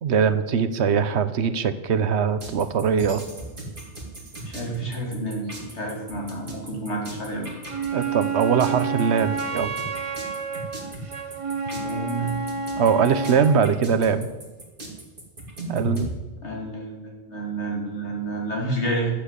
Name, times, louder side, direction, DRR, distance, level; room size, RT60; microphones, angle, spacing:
voice 1, 0.0-3.2 7.9-9.7 12.8-14.3 15.7-16.1, right 6 dB, 80° right, 13 dB, 1.1 m, -22 dB
sound 1, 2.4-16.1, right 2 dB, 50° right, 2.8 m, -37 dB
voice 2, 4.4-7.5 11.7-12.3 16.4-19.1, right 2 dB, 85° left, -1 dB, 3.2 m, -30 dB
Wind instrument woodwind instrument, 7.7-13.7, right 5 dB, 30° right, 0.8 m, -29 dB
12.0 x 7.7 x 8.2 m, 1.2 s
omnidirectional pair, 1.1 m